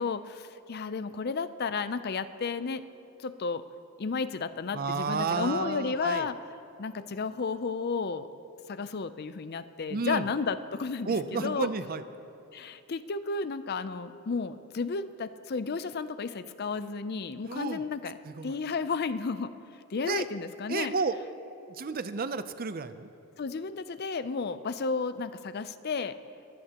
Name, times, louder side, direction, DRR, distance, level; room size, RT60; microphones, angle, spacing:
voice 1, 0.0-2.8 3.2-3.6 4.0-6.4 6.8-8.3 8.7-11.7 12.5-18.2 18.4-19.5 19.9-20.9 23.4-26.1, left 4 dB, 45° left, 12 dB, 0.5 m, -32 dB
voice 2, 4.7-6.3 9.9-10.3 11.1-12.0 17.5-17.8 18.2-18.6 20.0-20.3 20.7-21.2 21.7-23.1, right 4 dB, 40° right, 11 dB, 0.5 m, -31 dB
22.5 x 16.0 x 2.9 m, 2.8 s
head